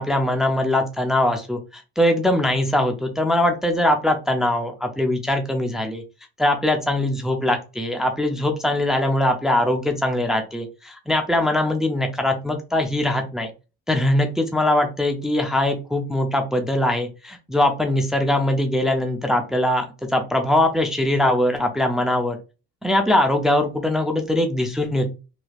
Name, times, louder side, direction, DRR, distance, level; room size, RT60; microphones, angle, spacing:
voice 1, 0.0-6.0 6.4-13.5 13.9-22.4 22.8-25.1, left 1 dB, ahead, 4 dB, 0.5 m, -21 dB
3.1 x 3.0 x 2.4 m, 0.30 s
cardioid pair, 90°, 30 cm